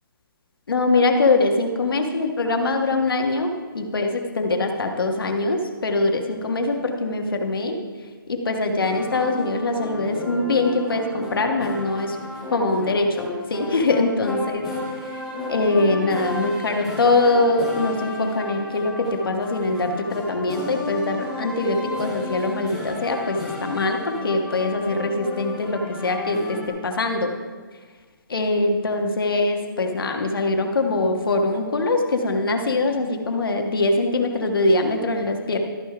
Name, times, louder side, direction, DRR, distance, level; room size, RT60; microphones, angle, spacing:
voice 1, 0.7-7.8 8.3-12.2 12.5-14.7 15.5-27.3 28.3-35.6, left 2 dB, 75° left, 3 dB, 1.6 m, -23 dB
sound 1, 8.8-26.7, left 1 dB, 5° right, 1.3 m, -33 dB
13.0 x 6.5 x 5.0 m, 1.4 s
hypercardioid pair, 175°, 12 cm